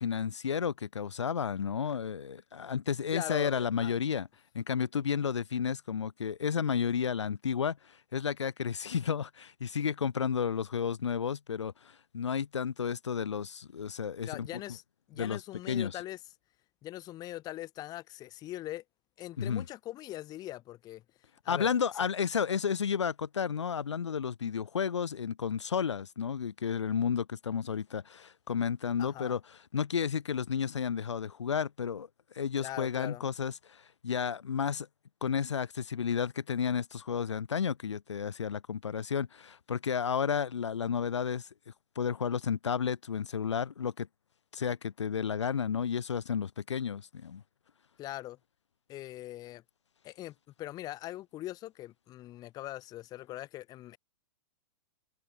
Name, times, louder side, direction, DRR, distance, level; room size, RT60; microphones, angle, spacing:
voice 1, 0.0-4.3 4.5-14.5 15.2-15.4 15.7-15.9 19.4-19.7 21.5-29.4 29.7-32.1 32.3-34.9 35.2-41.5 42.0-44.1 44.5-47.4, left 7 dB, 75° left, 0.6 m, -32 dB
voice 2, 3.1-3.9 14.2-14.8 15.1-16.2 16.8-18.8 19.2-21.0 21.4-21.7 22.0-22.1 29.0-29.4 32.6-33.2 48.0-48.4 48.9-49.6 50.0-54.0, left 15 dB, 25° left, 0.8 m, -41 dB
figure-of-eight pair, 105°, 15 cm